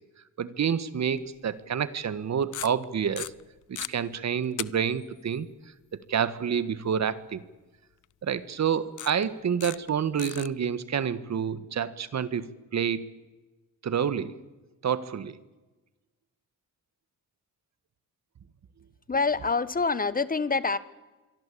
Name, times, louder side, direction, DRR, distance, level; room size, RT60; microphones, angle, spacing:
voice 1, 0.4-3.3 3.7-5.5 6.1-7.4 8.2-13.0 13.8-14.4 14.8-15.3, right 7 dB, 55° right, 15 dB, 1.7 m, -28 dB
sound 1, 1.2-1.3 2.4-2.8 3.2-3.9 4.6-4.7 5.0-5.1 8.0-8.1 9.0-9.2 9.6-9.9 10.2-10.5, left 12 dB, 70° left, 0.8 m, -36 dB
voice 2, 19.1-20.8, left 4 dB, 25° left, 16 dB, 1.5 m, -26 dB
26.5 x 23.5 x 8.6 m, 1.2 s
cardioid pair, 105°, 32 cm